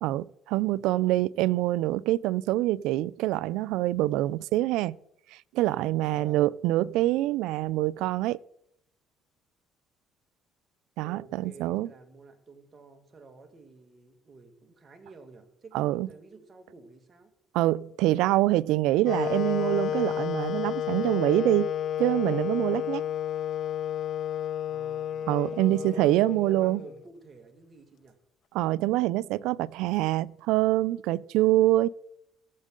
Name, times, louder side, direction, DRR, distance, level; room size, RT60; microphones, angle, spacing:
voice 1, 0.0-5.0 5.3-8.4 11.0-11.9 15.7-16.1 17.5-21.7 22.0-23.0 25.3-26.8 28.5-31.9, right 16 dB, 80° right, 0.3 m, -25 dB
voice 2, 6.0-6.5 11.0-17.3 24.7-25.3 25.7-26.1 26.4-28.2, right 3 dB, 35° right, 1.9 m, -51 dB
Wind instrument woodwind instrument, 19.0-27.0, left 10 dB, 55° left, 0.4 m, -31 dB
18.5 x 7.4 x 3.8 m
supercardioid pair, 90°, 0 cm